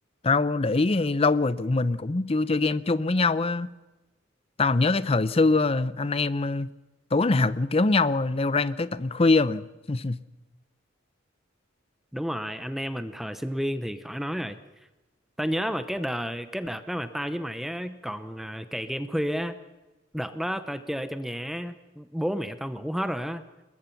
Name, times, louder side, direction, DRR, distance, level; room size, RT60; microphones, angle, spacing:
voice 1, 0.2-3.7 4.6-6.7 7.1-10.2, left 3 dB, 30° left, 0.6 m, -23 dB
voice 2, 12.1-14.6 15.4-19.6 20.1-23.4, equal, ahead, 0.8 m, -31 dB
21.5 x 21.0 x 5.9 m
head